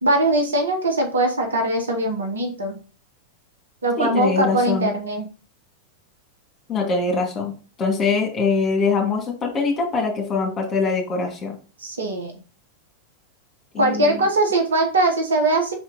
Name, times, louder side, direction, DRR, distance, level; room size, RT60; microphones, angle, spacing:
voice 1, 0.0-2.8 3.8-5.3 11.8-12.3 13.8-15.7, right 2 dB, 70° right, 3 dB, 1.5 m, -21 dB
voice 2, 4.0-4.9 6.7-7.5 7.8-11.6 13.7-14.2, left 4 dB, 25° left, 1 dB, 2.3 m, -23 dB
5.6 x 4.3 x 4.0 m, 0.35 s
figure-of-eight pair, 90°, 0 cm